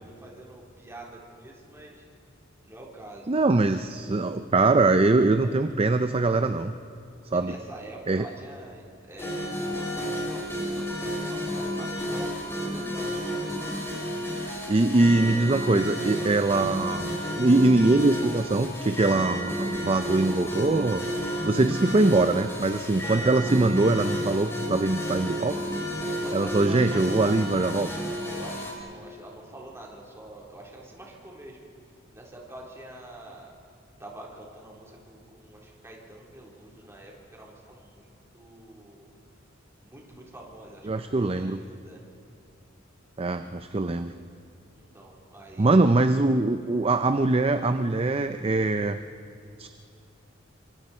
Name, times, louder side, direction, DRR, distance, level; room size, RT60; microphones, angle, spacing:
voice 1, 0.0-2.0 2.6-3.3 7.3-13.4 23.0-23.3 26.0-27.8 28.3-31.7 32.1-33.5 34.0-39.1 39.8-42.0 44.7-45.9, right 1 dB, 15° right, -3 dB, 3.9 m, -46 dB
voice 2, 3.3-6.7 7.3-7.5 8.1-8.3 14.4-25.6 26.3-27.9 40.9-41.6 43.2-44.1 45.6-49.0 49.6-49.7, right 2 dB, 30° right, 9 dB, 0.6 m, -23 dB
sound 1, 9.2-28.7, equal, 15° left, 4.2 m, -31 dB
27.0 x 25.0 x 4.4 m, 2.5 s
head